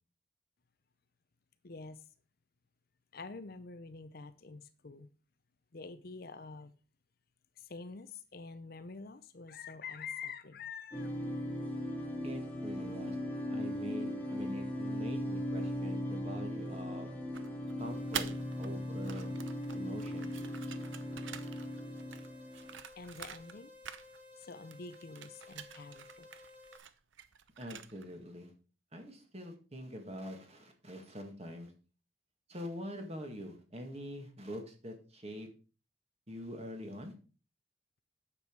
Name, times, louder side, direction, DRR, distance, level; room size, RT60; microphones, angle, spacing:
voice 1, 1.6-2.0 3.1-5.1 5.7-6.7 7.6-11.1 23.0-23.7 24.4-26.3, left 4 dB, 50° left, 12 dB, 0.6 m, -46 dB
sound 1, 10.9-22.8, left 1 dB, 5° left, 1.8 m, -38 dB
voice 2, 12.2-13.2 13.5-17.1 17.8-18.3 18.6-19.4 19.7-20.3 27.6-28.5 28.9-31.7 32.5-35.5 36.3-37.1, equal, 30° right, 4 dB, 2.0 m, -44 dB
sound 2, 17.3-18.7 19.0-23.6 23.8-24.5 24.7-28.1, right 8 dB, 70° right, 0.8 m, -46 dB
sound 3, 17.8-26.8, left 3 dB, 10° right, 1.9 m, -56 dB
9.5 x 7.1 x 4.7 m, 0.36 s
head